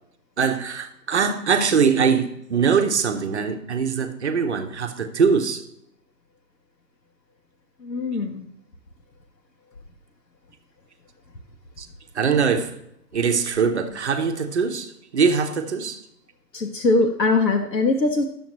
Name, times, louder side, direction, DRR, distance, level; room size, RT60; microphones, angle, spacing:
voice 1, 0.4-5.6 11.8-11.9 12.1-12.7 13.1-16.0, right 6 dB, 45° right, 0.8 m, -22 dB
voice 2, 7.8-8.5 16.5-18.2, left 3 dB, 85° left, 1.0 m, -21 dB
11.0 x 7.1 x 2.9 m
figure-of-eight pair, 135°, 50 cm